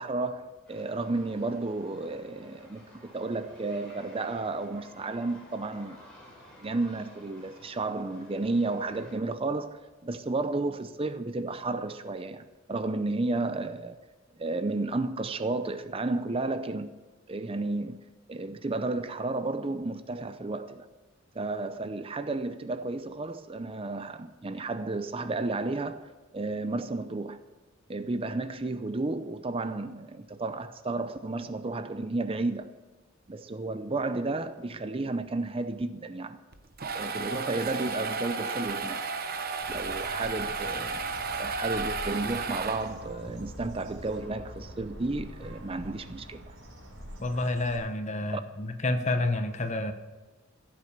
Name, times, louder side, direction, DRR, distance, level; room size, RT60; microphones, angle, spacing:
voice 1, 0.0-6.0 6.6-14.0 14.4-16.9 17.3-18.0 18.3-20.9 21.3-26.1 26.3-27.4 27.9-32.7 33.3-36.4 36.9-39.0 39.7-41.0 41.4-46.4 48.3-48.4, right 2 dB, 30° right, 0.6 m, -32 dB
sound 1, 0.7-9.2, left 1 dB, 5° left, 5.8 m, -52 dB
sound 2, 36.5-43.2, right 4 dB, 50° right, 0.9 m, -33 dB
Bird, 39.6-47.8, equal, 80° right, 4.3 m, -44 dB
voice 2, 47.2-49.9, left 2 dB, 35° left, 1.1 m, -29 dB
15.0 x 8.7 x 6.7 m
head